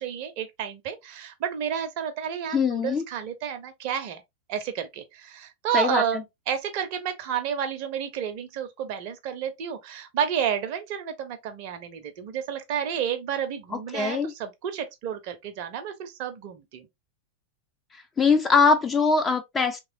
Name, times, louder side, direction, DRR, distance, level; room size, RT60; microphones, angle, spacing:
voice 1, 0.0-4.2 4.5-16.9, right 8 dB, 45° right, 0.5 m, -31 dB
voice 2, 2.5-3.0 5.7-6.0 13.7-14.3 17.9-19.8, left 4 dB, 20° left, 0.3 m, -22 dB
3.0 x 2.9 x 2.7 m
figure-of-eight pair, 90°, 0 cm